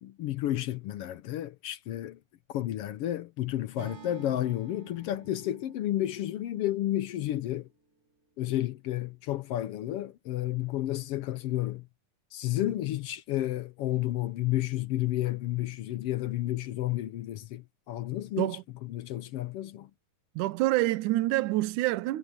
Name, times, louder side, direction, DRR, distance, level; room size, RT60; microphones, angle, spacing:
voice 1, 0.0-2.2 2.5-7.7 8.4-11.9 12.3-19.9, left 14 dB, 75° left, 1.4 m, -31 dB
Acoustic guitar / Strum, 3.8-8.0, right 7 dB, 55° right, 4.5 m, -51 dB
voice 2, 20.4-22.2, right 17 dB, 85° right, 2.3 m, -27 dB
omnidirectional pair, 3.5 m